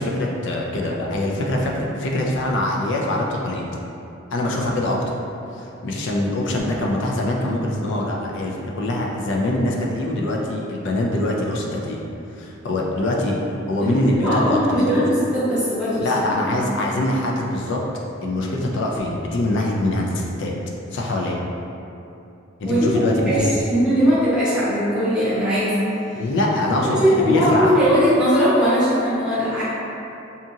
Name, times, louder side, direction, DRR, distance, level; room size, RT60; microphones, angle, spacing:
voice 1, 0.0-3.6 4.3-5.0 5.6-12.0 12.4-13.4 13.7-15.0 16.0-17.8 18.2-20.5 20.9-21.4 22.6-23.6 26.1-27.7, left 1 dB, 60° left, -1 dB, 0.4 m, -23 dB
voice 2, 13.8-16.6 22.6-22.9 23.3-25.8 26.7-29.6, equal, 5° right, -13 dB, 0.9 m, -20 dB
2.8 x 2.4 x 2.6 m, 2.8 s
head